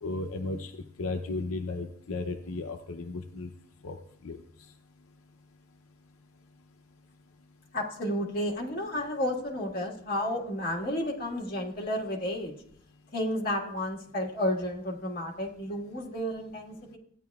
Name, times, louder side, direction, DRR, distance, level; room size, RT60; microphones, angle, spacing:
voice 1, 0.0-0.7 1.0-3.5 3.8-4.0 4.2-4.4, left 2 dB, 85° left, 5 dB, 0.6 m, -34 dB
voice 2, 7.7-12.5 13.1-17.0, left 1 dB, 45° left, -3 dB, 1.7 m, -32 dB
15.0 x 9.4 x 2.4 m, 0.69 s
head